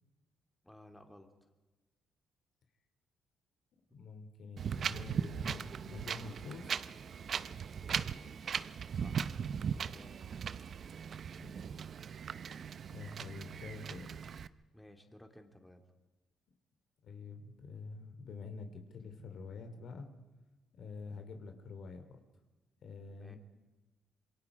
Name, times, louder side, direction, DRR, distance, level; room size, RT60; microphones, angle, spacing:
voice 1, 0.6-1.5 8.9-9.4 9.9-10.2 14.7-15.8 23.1-23.4, left 1 dB, 5° left, 4 dB, 2.6 m, -57 dB
voice 2, 3.9-6.6 11.4-11.5 12.9-14.2 17.0-20.1 20.8-22.2 22.8-23.4, left 4 dB, 65° left, 6 dB, 2.7 m, -47 dB
Wind, 4.6-14.5, right 7 dB, 55° right, 0.7 m, -39 dB
27.0 x 22.5 x 4.9 m, 1.2 s
cardioid pair, 90°, 0 cm